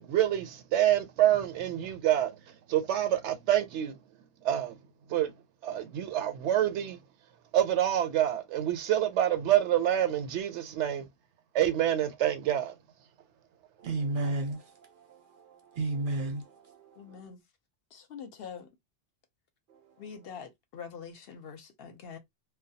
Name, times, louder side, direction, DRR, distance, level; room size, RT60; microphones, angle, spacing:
voice 1, 0.0-2.4 2.7-4.0 4.4-4.8 5.1-5.3 5.6-7.0 7.5-11.1 11.5-12.7, right 12 dB, 85° right, 0.9 m, -27 dB
voice 2, 13.8-17.0 19.7-19.8, right 2 dB, 60° right, 0.6 m, -34 dB
voice 3, 17.0-17.4 17.9-18.7 20.0-22.2, left 6 dB, 65° left, 0.8 m, -44 dB
2.3 x 2.2 x 2.6 m
omnidirectional pair, 1.2 m